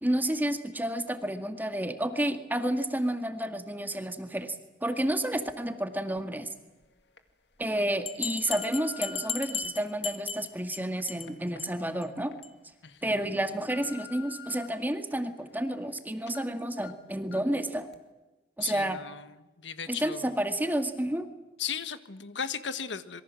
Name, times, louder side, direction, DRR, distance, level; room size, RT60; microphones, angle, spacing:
voice 1, 0.0-4.6 4.8-6.5 7.6-12.3 13.0-17.9 18.6-19.0 19.9-21.3, right 1 dB, 10° right, 7 dB, 2.0 m, -30 dB
sound 1, 6.2-6.3 6.9-7.2 7.8-9.4 10.1-12.4 12.8-12.9 13.4-14.7 15.1-16.0 16.3-16.4 16.8-16.9 17.3-17.6 17.9-18.0, left 10 dB, 70° left, 2.2 m, -49 dB
Bell, 8.1-10.8 11.1-11.3 11.6-11.7 12.0-12.1 12.4-12.5, left 6 dB, 35° left, 1.8 m, -35 dB
voice 2, 18.6-20.3 21.6-23.2, left 7 dB, 90° left, 11 dB, 1.5 m, -37 dB
26.5 x 23.0 x 7.6 m, 1.1 s
head